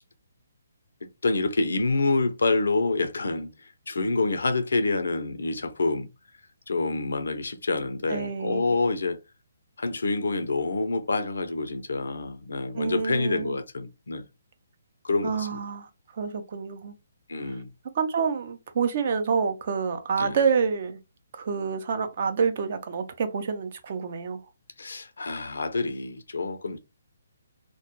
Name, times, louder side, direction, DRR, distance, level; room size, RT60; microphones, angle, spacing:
voice 1, 1.0-3.5 3.9-6.1 6.7-9.2 9.8-14.2 15.0-15.6 17.3-17.7 20.2-20.4 24.8-26.8, left 3 dB, 80° left, 0.5 m, -27 dB
voice 2, 8.1-8.7 12.7-13.6 15.2-16.9 17.4-17.6 17.9-21.0 21.3-24.4, right 6 dB, 50° right, 0.5 m, -28 dB
2.2 x 2.0 x 3.0 m
hypercardioid pair, 150°, 0 cm